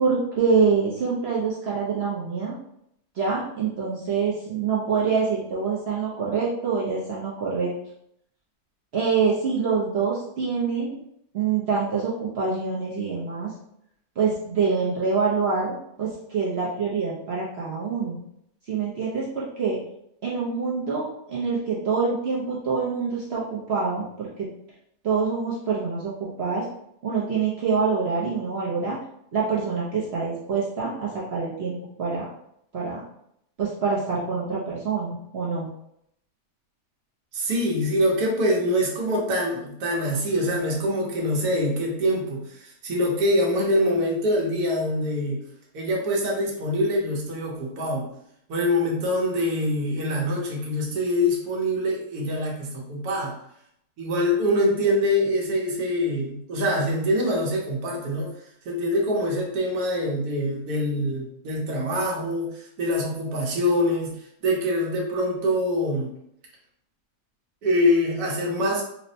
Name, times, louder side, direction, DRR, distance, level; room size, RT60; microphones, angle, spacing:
voice 1, 0.0-2.6 3.1-7.7 8.9-11.0 11.3-13.5 14.2-18.2 18.7-19.8 20.2-24.5 25.0-26.6 27.0-29.0 29.3-32.3 32.7-33.0 33.6-35.7, right 5 dB, 60° right, -5 dB, 0.7 m, -25 dB
voice 2, 37.3-45.4 45.7-48.1 48.5-53.3 54.0-58.3 58.6-64.1 64.4-66.1 67.6-68.8, left 1 dB, 80° right, -2 dB, 1.3 m, -24 dB
4.2 x 2.0 x 2.7 m, 0.74 s
omnidirectional pair, 1.6 m